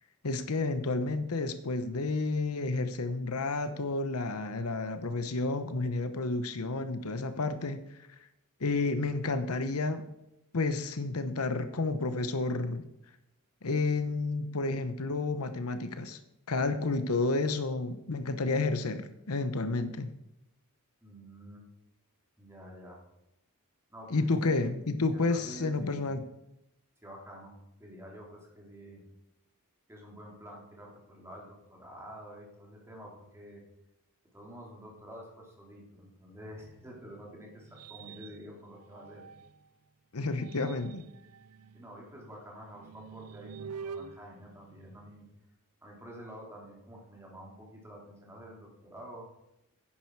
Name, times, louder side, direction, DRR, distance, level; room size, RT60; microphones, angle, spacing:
voice 1, 0.2-8.1 8.6-10.1 10.5-12.8 13.6-16.2 16.5-20.1 24.1-26.2 40.1-41.0, left 3 dB, 75° left, 10 dB, 0.9 m, -31 dB
voice 2, 21.0-21.6 22.4-23.0 23.9-24.3 25.1-26.1 27.0-29.0 29.9-33.6 34.3-39.2 40.2-40.4 41.7-45.2 45.8-49.3, equal, 10° right, -2 dB, 3.3 m, -48 dB
sound 1, 36.5-39.7 40.2-45.4, right 6 dB, 80° right, 0.6 m, -48 dB
10.5 x 10.5 x 4.7 m, 0.86 s
head